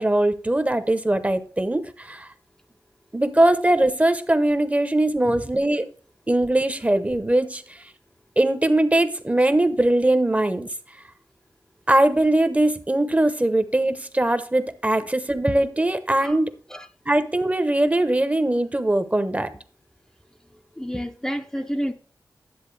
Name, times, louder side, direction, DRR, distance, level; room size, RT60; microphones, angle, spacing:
voice 1, 0.0-2.3 3.1-5.9 6.3-7.8 8.4-10.7 11.9-16.5 17.1-19.5, right 1 dB, 20° right, 0.8 m, -21 dB
voice 2, 20.8-21.9, equal, 5° left, 0.5 m, -29 dB
10.5 x 7.5 x 3.2 m
wide cardioid pair, 65°, 7 cm